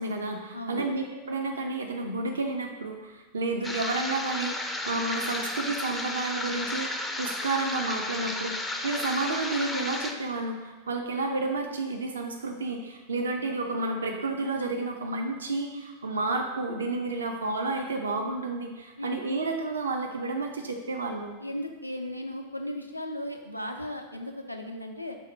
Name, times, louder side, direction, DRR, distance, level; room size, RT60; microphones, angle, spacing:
voice 1, 0.0-6.9 7.2-21.4, right 3 dB, 70° right, 3 dB, 0.4 m, -31 dB
voice 2, 0.5-0.9 19.0-19.2 21.4-25.2, left 1 dB, 90° left, 4 dB, 0.3 m, -36 dB
sound 1, 3.6-10.1, left 2 dB, 10° left, 0.3 m, -33 dB
4.0 x 2.0 x 4.4 m, 1.2 s
figure-of-eight pair, 90°, 0 cm